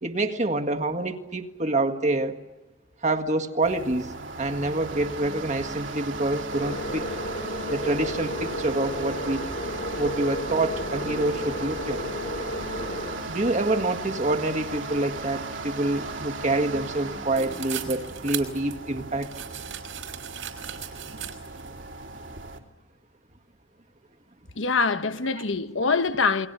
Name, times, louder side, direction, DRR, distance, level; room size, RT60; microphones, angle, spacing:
voice 1, 0.0-2.4 3.0-4.1 4.4-7.1 7.7-9.4 9.9-12.0 13.3-19.3 25.4-25.5, right 2 dB, 35° right, 1.8 m, -27 dB
sound 1, 3.6-22.6, right 3 dB, 65° right, 2.9 m, -36 dB
sound 2, 6.5-13.2, left 1 dB, 45° left, 3.2 m, -33 dB
sound 3, 17.3-21.7, right 10 dB, 85° right, 4.8 m, -37 dB
voice 2, 24.6-26.5, left 4 dB, 70° left, 1.1 m, -24 dB
29.0 x 23.0 x 6.9 m
head